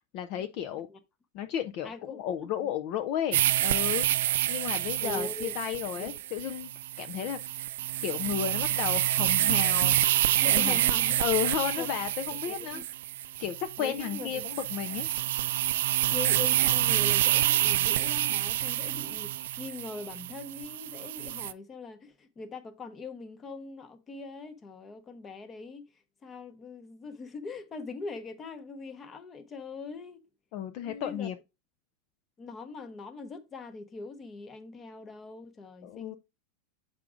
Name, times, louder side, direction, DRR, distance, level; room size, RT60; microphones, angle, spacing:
voice 1, 0.1-0.9 1.3-4.1 4.5-6.7 7.0-7.4 8.0-10.0 10.4-10.8 11.2-12.8 13.4-15.1 30.5-31.4 35.8-36.2, left 10 dB, 40° left, 0.4 m, -33 dB
voice 2, 1.8-2.7 5.0-5.5 5.9-6.2 10.4-11.2 11.8-11.9 12.5-12.8 13.8-14.5 16.1-25.9 26.2-30.2 30.8-31.3 32.4-36.2, left 4 dB, 15° left, 0.8 m, -42 dB
sound 1, 3.3-21.5, right 14 dB, 75° right, 0.4 m, -28 dB
7.3 x 4.9 x 3.7 m
supercardioid pair, 165°, 0 cm